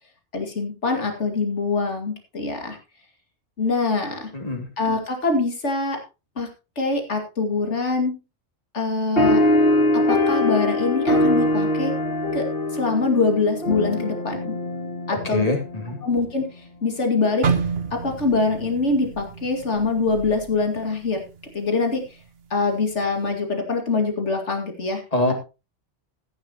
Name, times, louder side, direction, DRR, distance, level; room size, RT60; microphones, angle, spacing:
voice 1, 0.3-2.8 3.6-4.3 4.8-6.0 6.4-6.5 6.8-8.1 8.7-9.4 9.9-11.9 12.3-12.5 12.7-14.5 15.1-15.5 16.0-17.5 17.9-21.2 21.5-22.0 22.5-25.0, left 3 dB, 90° left, 3 dB, 2.6 m, -24 dB
voice 2, 4.3-4.7 15.1-16.0 25.1-25.3, left 2 dB, 35° left, 2 dB, 2.7 m, -24 dB
sound 1, 9.2-16.0, left 1 dB, 55° left, 2.5 m, -22 dB
sound 2, 17.4-21.5 21.8-22.1 22.7-23.1, right 5 dB, 60° right, 1.2 m, -29 dB
14.5 x 10.5 x 3.0 m, 0.29 s
omnidirectional pair, 1.2 m